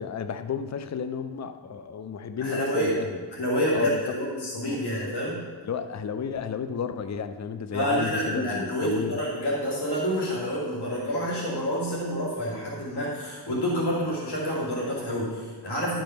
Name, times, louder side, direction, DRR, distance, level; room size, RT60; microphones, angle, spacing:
voice 1, 0.0-3.1 3.7-4.2 4.8-4.9 5.6-9.2, left 6 dB, 45° left, 10 dB, 0.6 m, -32 dB
voice 2, 2.4-3.0 3.3-5.4 7.7-16.0, equal, 75° left, -5 dB, 2.5 m, -28 dB
11.5 x 5.4 x 5.8 m, 1.5 s
cardioid pair, 70°, 40 cm